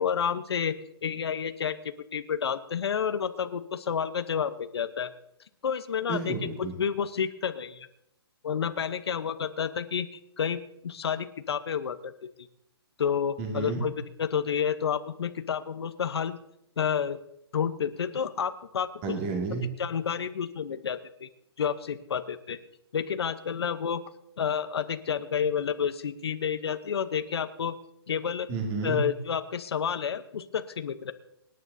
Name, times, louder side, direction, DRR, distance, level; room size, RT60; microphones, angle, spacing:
voice 1, 0.0-5.1 5.6-6.3 6.8-7.9 8.4-10.1 10.4-12.1 12.4-12.5 13.0-13.9 14.2-16.4 16.8-17.2 17.5-19.1 19.8-21.3 21.6-22.6 22.9-24.0 24.4-27.8 28.1-28.5 28.8-31.1, left 7 dB, 70° left, 10 dB, 0.9 m, -30 dB
voice 2, 6.1-6.7 13.4-13.8 19.0-19.6 28.5-29.0, right 3 dB, 25° right, 1 dB, 2.2 m, -31 dB
25.5 x 9.9 x 2.7 m, 0.79 s
hypercardioid pair, 160°, 14 cm